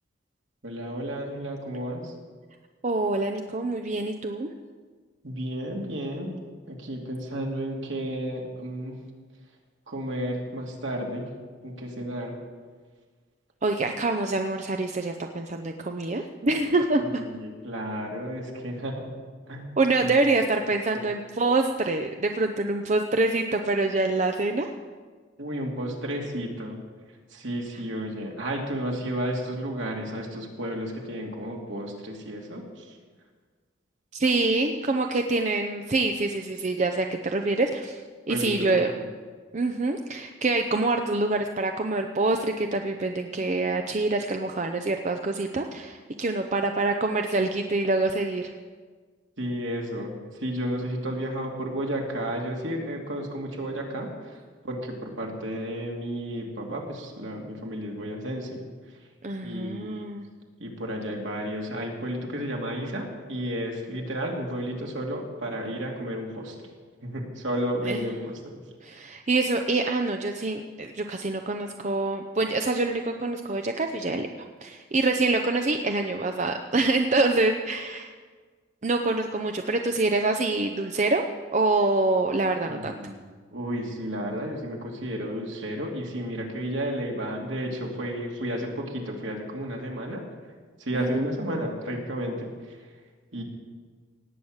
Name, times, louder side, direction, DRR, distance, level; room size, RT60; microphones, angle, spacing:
voice 1, 0.6-2.1 5.2-6.4 6.7-9.0 9.9-11.3 11.6-12.4 17.0-19.1 19.5-19.7 20.0-20.2 20.9-21.0 25.4-26.8 27.3-32.9 38.3-39.0 49.4-54.4 54.6-58.6 59.4-60.1 60.6-66.7 67.0-68.5 82.6-83.3 83.5-90.2 90.8-92.8 93.3-93.4, equal, 65° right, 0 dB, 2.5 m, -32 dB
voice 2, 2.8-4.5 13.6-17.2 19.8-24.7 34.1-38.9 39.5-48.5 59.2-60.3 67.9-68.1 68.8-74.3 74.6-78.1 78.8-81.2 81.5-82.9 90.9-91.3, right 2 dB, 35° right, 5 dB, 0.6 m, -26 dB
18.0 x 8.9 x 6.5 m, 1.5 s
head